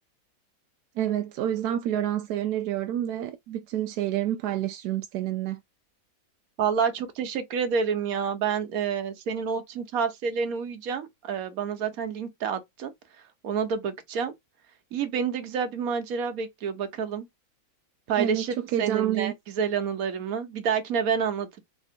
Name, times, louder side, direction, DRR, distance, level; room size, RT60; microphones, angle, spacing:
voice 1, 1.0-5.6 18.2-18.4 18.7-19.3, right 11 dB, 75° right, 0.9 m, -28 dB
voice 2, 6.6-12.9 13.4-14.3 14.9-17.3 18.1-21.6, right 6 dB, 55° right, 1.2 m, -28 dB
4.2 x 2.9 x 2.8 m
omnidirectional pair, 2.1 m